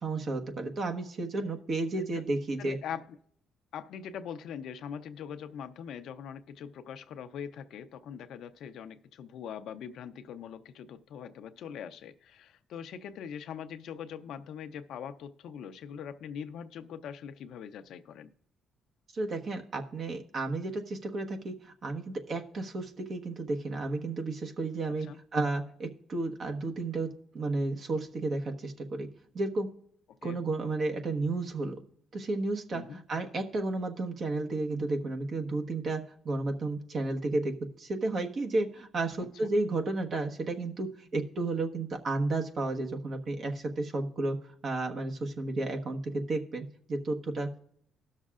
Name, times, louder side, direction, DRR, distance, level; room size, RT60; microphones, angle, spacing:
voice 1, 0.0-2.8 19.1-25.1 25.3-29.1 29.3-29.7 30.2-31.8 32.1-44.4 44.6-47.5, right 2 dB, 55° right, 3 dB, 1.3 m, -32 dB
voice 2, 2.6-3.2 3.7-18.3 24.9-25.2 30.2-30.4 32.7-33.0 39.2-39.5, left 8 dB, 75° left, 9 dB, 0.6 m, -42 dB
19.0 x 6.5 x 2.5 m, 0.67 s
cardioid pair, 90°, 0 cm